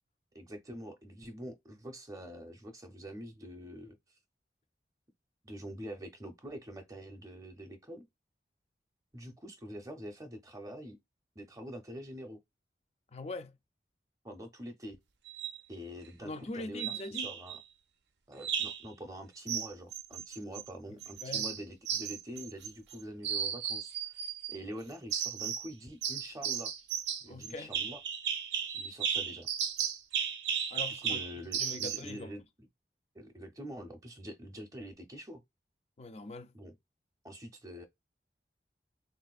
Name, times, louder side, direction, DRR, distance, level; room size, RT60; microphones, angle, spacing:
voice 1, 0.3-4.0 5.4-8.1 9.1-11.0 11.4-12.4 14.2-15.0 15.7-16.9 17.2-17.6 18.3-24.2 24.5-26.7 27.2-28.0 28.7-29.5 31.0-32.4 33.1-35.4 36.5-36.8 37.2-37.8, equal, 20° right, 0.6 m, -45 dB
voice 2, 13.1-13.6 16.2-17.3 21.2-21.5 27.3-27.7 30.7-31.2 31.6-32.3 36.0-36.5, left 2 dB, 35° left, 0.4 m, -42 dB
sound 1, 15.3-15.6 16.8-17.6 18.4-18.9 19.5-20.7 21.0-23.0 23.2-24.6 25.1-25.7 26.0-32.1, right 8 dB, 80° right, 0.5 m, -35 dB
3.5 x 2.5 x 2.4 m
head